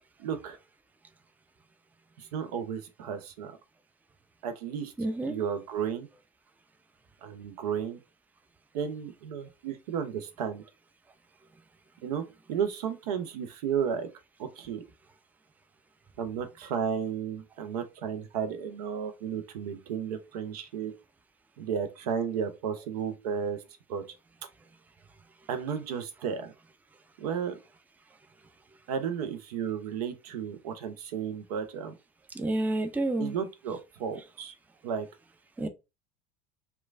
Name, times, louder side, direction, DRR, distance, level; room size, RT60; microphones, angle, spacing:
voice 1, 0.2-0.6 2.2-3.6 4.4-4.9 5.2-6.1 7.2-8.0 8.7-10.6 12.0-12.2 12.5-14.1 14.4-14.8 16.2-20.9 21.6-23.6 23.9-24.0 25.5-26.5 27.2-27.6 28.9-31.9 33.2-34.5 34.8-35.1, right 7 dB, 75° right, 0.6 m, -33 dB
voice 2, 5.0-5.4 32.4-33.3 35.6-35.7, right 2 dB, 10° right, 0.4 m, -29 dB
3.0 x 2.2 x 2.4 m
hypercardioid pair, 75°, 20 cm